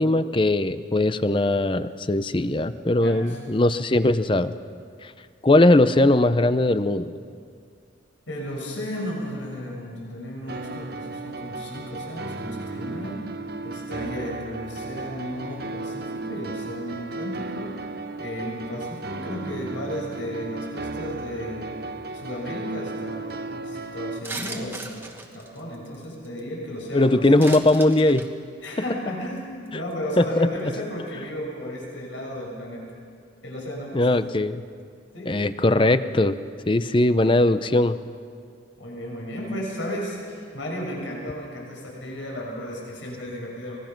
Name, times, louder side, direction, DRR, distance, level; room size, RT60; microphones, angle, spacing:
voice 1, 0.0-4.5 5.0-5.1 5.4-7.1 26.9-28.3 30.2-30.5 33.9-34.6 35.3-36.4 36.7-38.0, left 2 dB, 25° left, 12 dB, 0.6 m, -20 dB
voice 2, 3.0-3.4 8.3-13.2 13.6-17.8 18.2-21.7 22.1-25.1 25.3-27.4 28.6-32.9 33.4-34.2 35.1-35.3 38.8-43.8, equal, 80° left, -2 dB, 6.5 m, -34 dB
sound 1, 10.5-24.2, right 2 dB, 55° right, 0.8 m, -35 dB
sound 2, 24.2-26.4 27.4-28.3 28.6-28.8 29.4-29.5 29.7-29.9 30.2-30.3, right 2 dB, 10° right, 1.3 m, -37 dB
25.0 x 20.0 x 6.0 m, 2.2 s
head